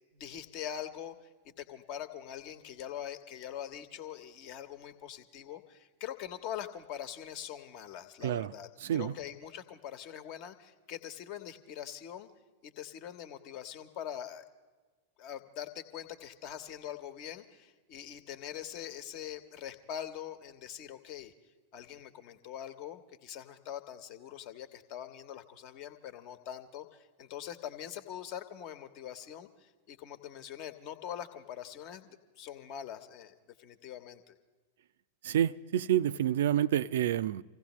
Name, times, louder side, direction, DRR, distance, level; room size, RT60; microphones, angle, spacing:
voice 1, 0.1-12.3 12.6-14.4 15.2-21.3 21.7-32.1 32.4-34.4, left 10 dB, 45° left, 1.2 m, -43 dB
voice 2, 8.8-9.1 35.2-37.4, right 11 dB, 60° right, 0.4 m, -28 dB
26.5 x 16.5 x 3.1 m
figure-of-eight pair, 90°, 0 cm